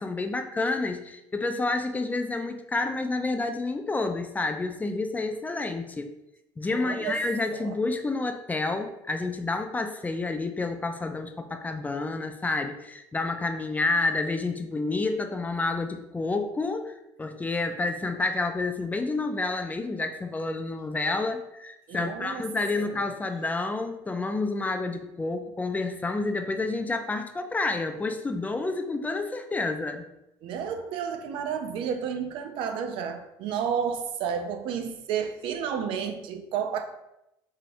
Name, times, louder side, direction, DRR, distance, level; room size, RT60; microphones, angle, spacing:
voice 1, 0.0-6.1 6.6-30.1, left 3 dB, 20° left, 0.4 m, -29 dB
voice 2, 6.7-7.2 7.5-7.8 21.9-22.4 22.8-22.9 30.4-36.8, right 7 dB, 75° right, 0.5 m, -31 dB
4.9 x 2.9 x 2.6 m
supercardioid pair, 90°, 9 cm